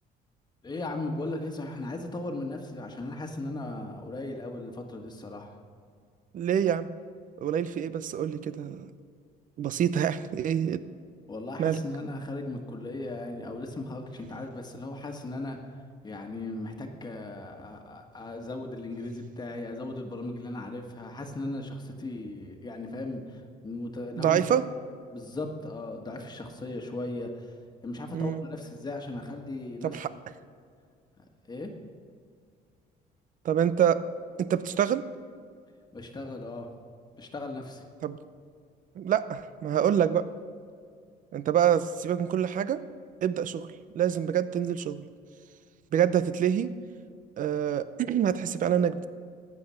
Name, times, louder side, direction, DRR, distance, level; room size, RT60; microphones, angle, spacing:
voice 1, 0.6-5.6 11.3-15.6 16.0-24.4 25.1-27.5 27.8-30.0 31.2-31.7 35.9-36.7 37.2-37.8, left 2 dB, 25° left, 3 dB, 1.6 m, -37 dB
voice 2, 6.3-6.9 7.4-8.9 9.6-10.8 11.6-11.8 24.1-24.6 28.1-28.4 29.8-30.1 33.4-34.0 34.4-35.0 38.0-38.2 39.0-40.3 41.3-42.8 43.2-43.7 43.9-45.0 45.9-46.7 47.4-49.1, right 9 dB, 50° right, 14 dB, 0.7 m, -26 dB
15.5 x 9.8 x 5.8 m, 2.1 s
cardioid pair, 110°, 17 cm